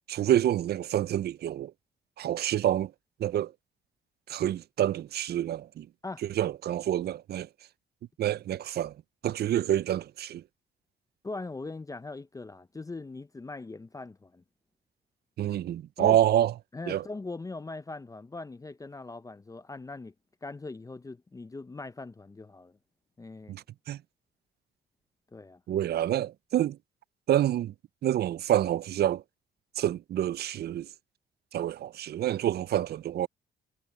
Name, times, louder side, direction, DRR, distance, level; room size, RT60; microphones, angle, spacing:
voice 1, 0.1-1.7 2.2-2.9 3.2-3.5 4.3-5.9 6.2-7.5 8.2-9.0 9.2-10.4 15.4-16.5 16.9-17.1 23.5-24.0 25.7-26.8 27.3-27.7 28.0-29.2 29.8-30.9 31.5-33.3, right 11 dB, 55° right, 0.4 m, -27 dB
voice 2, 11.2-14.4 16.0-16.2 16.7-20.1 20.4-22.8 23.2-23.6 25.3-25.6, left 3 dB, 15° left, 0.6 m, -40 dB
cardioid pair, 90°, 20 cm